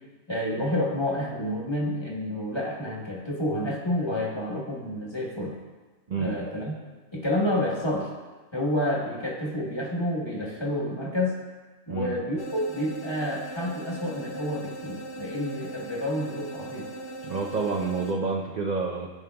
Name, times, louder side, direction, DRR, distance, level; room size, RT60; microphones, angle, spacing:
voice 1, 0.3-5.5 6.2-6.7 7.1-8.1 8.5-11.4 11.9-16.9, left 1 dB, 20° left, -3 dB, 1.1 m, -29 dB
voice 2, 11.9-12.2 17.2-19.1, right 4 dB, 65° right, -2 dB, 0.4 m, -28 dB
sound 1, 12.4-18.1, right 2 dB, 55° left, 0.9 m, -39 dB
13.5 x 5.3 x 2.3 m, 1.3 s
omnidirectional pair, 1.5 m